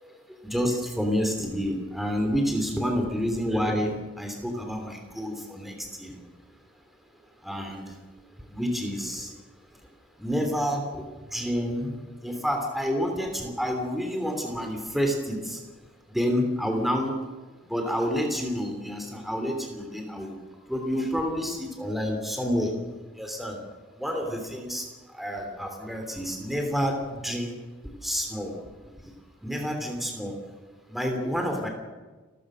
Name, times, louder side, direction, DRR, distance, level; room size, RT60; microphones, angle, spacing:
voice 1, 0.5-6.2 7.4-7.8 8.5-9.3 10.2-11.0 11.3-15.6 16.1-17.1 17.7-20.4 20.7-22.7 23.2-23.6 24.0-24.8 25.2-27.6 27.8-28.5 29.4-30.3 30.9-31.7, equal, ahead, 3 dB, 3.1 m, -29 dB
29.5 x 14.5 x 6.3 m, 1.3 s
head